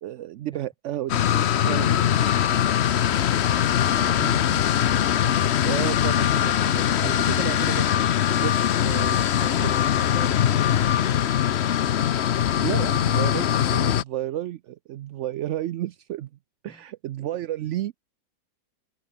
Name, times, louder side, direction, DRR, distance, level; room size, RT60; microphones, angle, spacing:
voice 1, 0.0-1.2 1.7-2.0 3.8-3.9 4.2-4.6 5.6-9.1 12.5-16.3 16.6-18.0, right 13 dB, 75° right, 0.6 m, -32 dB
sound 1, 1.1-14.0, left 10 dB, 55° left, 0.8 m, -22 dB
voice 2, 3.9-4.6 16.7-16.8, equal, ahead, 3.8 m, -43 dB
omnidirectional pair, 1.8 m